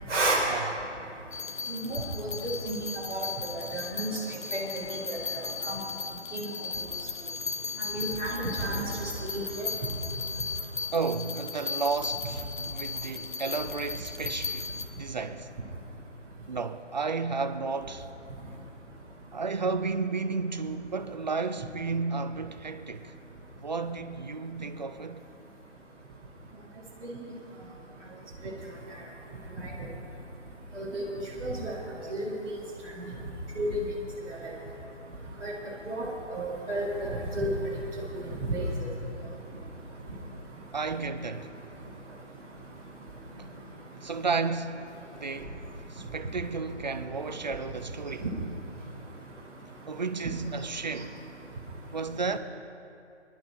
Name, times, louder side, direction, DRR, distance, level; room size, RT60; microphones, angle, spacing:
sound 1, 1.3-14.8, left 5 dB, 45° left, 0.8 m, -36 dB
voice 1, 1.7-2.0 2.4-2.8 3.1-4.1 4.5-4.6 5.7-5.8 6.3-6.5 7.9-8.8 9.3-9.7 27.1-27.3 30.7-31.0 31.4-31.7 32.1-32.6 33.6-33.8 35.4-35.5 35.8-36.1 36.3-37.5 38.5-38.6 48.2-48.3, right 2 dB, 10° right, 1.1 m, -31 dB
voice 2, 10.9-15.5 16.5-18.1 19.3-23.1 23.6-25.2 40.7-41.5 43.4-43.6 44.0-45.6 45.9-48.3 49.9-51.2 51.9-52.4, right 4 dB, 40° right, 0.5 m, -32 dB
22.0 x 11.5 x 3.2 m
figure-of-eight pair, 155°, 36 cm